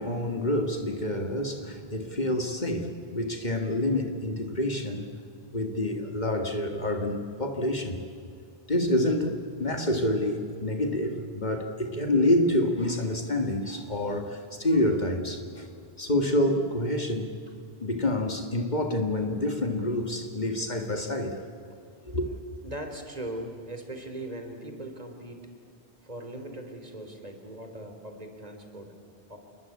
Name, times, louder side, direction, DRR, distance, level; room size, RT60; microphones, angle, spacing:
voice 1, 0.0-5.1 5.5-8.0 8.7-15.7 16.0-17.3 17.8-21.4 22.1-22.3, left 1 dB, 45° left, 5 dB, 2.2 m, -27 dB
voice 2, 22.6-25.4 26.0-29.0 29.3-29.4, right 1 dB, 40° right, 5 dB, 3.5 m, -39 dB
27.5 x 22.0 x 8.6 m, 2.4 s
omnidirectional pair, 1.0 m